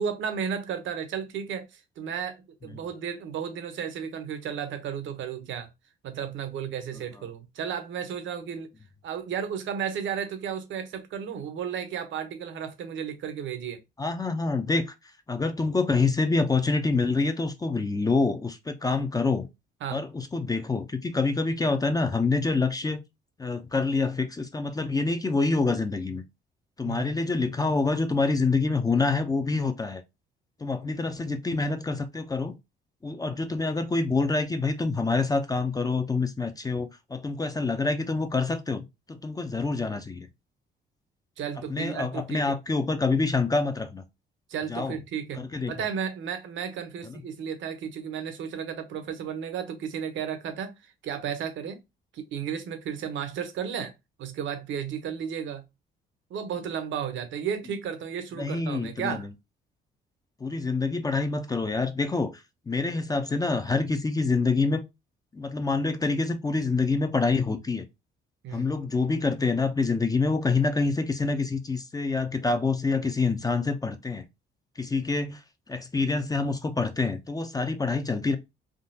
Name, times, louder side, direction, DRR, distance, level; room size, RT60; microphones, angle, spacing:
voice 1, 0.0-5.7 6.0-8.7 9.0-13.8 19.8-20.0 26.8-27.1 41.4-42.6 44.5-51.8 52.1-53.9 54.2-55.6 56.3-59.3 68.4-68.7, right 8 dB, 75° right, 0.8 m, -33 dB
voice 2, 14.0-14.9 15.3-19.5 19.9-23.0 23.4-26.2 26.8-30.0 30.6-32.6 33.0-40.3 41.7-44.0 44.7-45.0 45.4-45.7 47.0-47.2 58.4-59.3 60.4-64.8 65.3-67.9 68.5-74.3 74.8-75.4 75.7-78.4, left 3 dB, 20° left, 0.4 m, -26 dB
3.6 x 2.3 x 2.6 m
cardioid pair, 90°, 20 cm